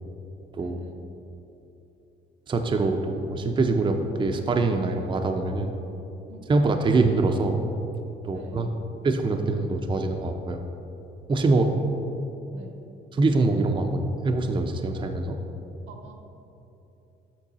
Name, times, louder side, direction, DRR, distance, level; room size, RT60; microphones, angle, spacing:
voice 1, 0.6-1.0 6.3-6.5 8.3-8.7 11.4-11.7 12.5-12.8 15.9-16.1, right 3 dB, 85° right, 3 dB, 0.9 m, -45 dB
voice 2, 2.5-5.8 6.5-7.6 8.2-8.7 9.0-10.6 11.3-11.7 13.1-15.4, right 3 dB, 25° right, 4 dB, 0.5 m, -24 dB
7.3 x 4.6 x 4.1 m, 2.9 s
cardioid pair, 90°, 20 cm